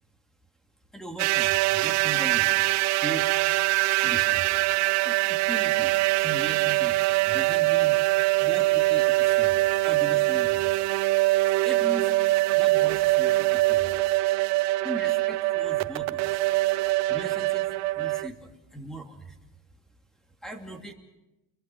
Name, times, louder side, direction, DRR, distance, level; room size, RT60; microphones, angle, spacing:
voice 1, 0.9-2.5 3.0-3.4 4.0-4.5 5.0-5.9 6.2-7.0 7.2-8.0 8.4-9.6 9.8-10.7 11.6-12.1 12.5-13.9 14.8-16.3 17.1-19.4 20.4-20.9, right 2 dB, ahead, 4 dB, 2.9 m, -39 dB
sound 1, 1.2-18.3, right 19 dB, 60° right, 0.7 m, -23 dB
29.5 x 22.5 x 6.2 m, 0.98 s
cardioid pair, 135°, 31 cm